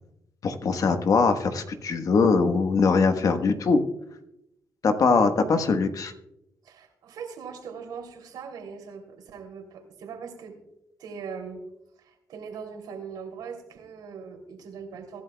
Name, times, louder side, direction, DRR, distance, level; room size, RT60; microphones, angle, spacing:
voice 1, 0.4-3.8 4.8-6.1, left 4 dB, 60° left, 7 dB, 1.3 m, -22 dB
voice 2, 6.6-10.6 11.0-11.6 12.0-15.2, right 6 dB, 90° right, 2 dB, 3.1 m, -40 dB
23.5 x 11.5 x 2.3 m, 0.85 s
cardioid pair, 80°, 7 cm